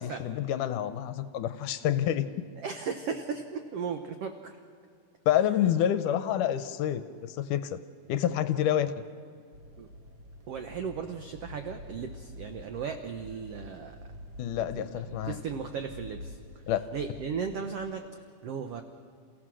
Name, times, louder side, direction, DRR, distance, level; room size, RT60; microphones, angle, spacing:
voice 1, 0.0-2.3 5.3-7.8 8.1-8.9 14.4-15.4 16.7-16.8, left 11 dB, 75° left, 11 dB, 2.1 m, -28 dB
voice 2, 2.6-4.6 6.1-6.2 9.8-9.9 10.5-14.0 14.6-16.4 16.9-18.8, right 6 dB, 90° right, 6 dB, 1.3 m, -36 dB
sound 1, 9.5-17.9, left 1 dB, 60° right, 1.0 m, -47 dB
29.0 x 16.0 x 6.3 m, 2.4 s
omnidirectional pair, 4.0 m